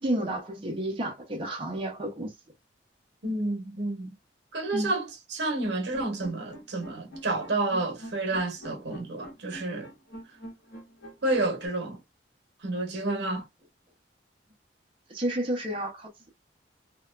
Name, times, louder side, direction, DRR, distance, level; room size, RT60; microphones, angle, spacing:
voice 1, 0.0-2.3 4.7-4.9 15.1-16.3, right 1 dB, 30° right, 0.5 m, -31 dB
voice 2, 3.2-4.1 4.5-9.9 11.2-12.0 12.6-13.4, right 2 dB, 65° right, 0.9 m, -30 dB
sound 1, 5.6-11.7, equal, 70° left, 1.1 m, -45 dB
2.8 x 2.2 x 2.3 m
head